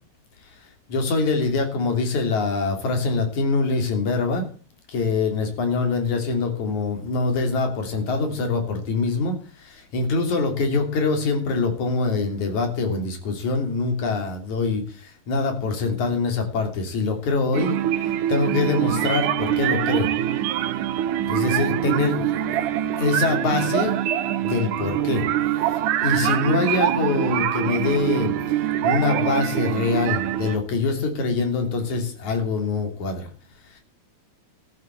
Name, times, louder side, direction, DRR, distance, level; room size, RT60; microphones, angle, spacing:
voice 1, 0.9-4.5 4.9-17.8 18.3-20.1 21.3-22.2 23.0-24.0 24.4-25.2 26.0-33.3 33.7-33.8, left 4 dB, 65° left, 5 dB, 4.4 m, -24 dB
sound 1, 17.5-30.6, right 11 dB, 85° right, 2.5 m, -24 dB
13.5 x 7.7 x 8.2 m, 0.40 s
omnidirectional pair, 3.6 m